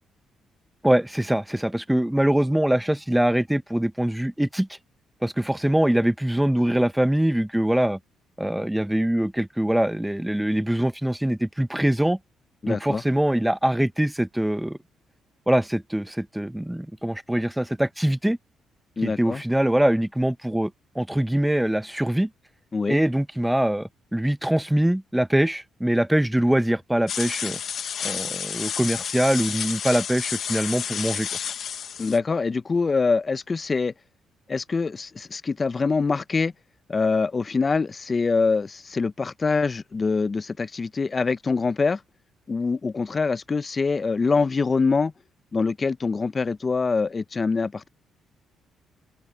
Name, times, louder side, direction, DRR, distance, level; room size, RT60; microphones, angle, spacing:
voice 1, 0.8-4.8 5.2-8.0 8.4-12.2 12.7-14.8 15.5-18.4 19.0-22.3 22.9-27.6 28.0-31.3, right 1 dB, 5° right, 0.7 m, -23 dB
voice 2, 12.6-13.0 19.0-19.4 22.7-23.0 32.0-33.9 34.5-36.5 36.9-42.0 42.5-45.1 45.5-47.9, left 4 dB, 30° left, 0.5 m, -24 dB
sound 1, 27.1-32.2, left 8 dB, 60° left, 0.8 m, -30 dB
open air
cardioid pair, 90°, 0 cm